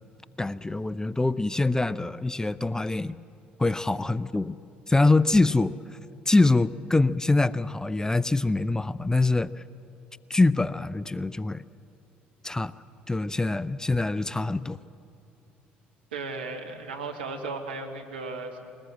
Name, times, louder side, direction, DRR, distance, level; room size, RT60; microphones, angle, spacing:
voice 1, 0.4-3.2 3.6-4.6 4.9-5.7 6.3-9.5 10.3-11.6 12.4-12.7 13.1-14.8, left 2 dB, 10° left, 18 dB, 0.5 m, -24 dB
voice 2, 16.1-18.7, right 3 dB, 80° right, 3 dB, 1.7 m, -35 dB
21.5 x 20.0 x 7.5 m, 2.7 s
figure-of-eight pair, 55°, 5 cm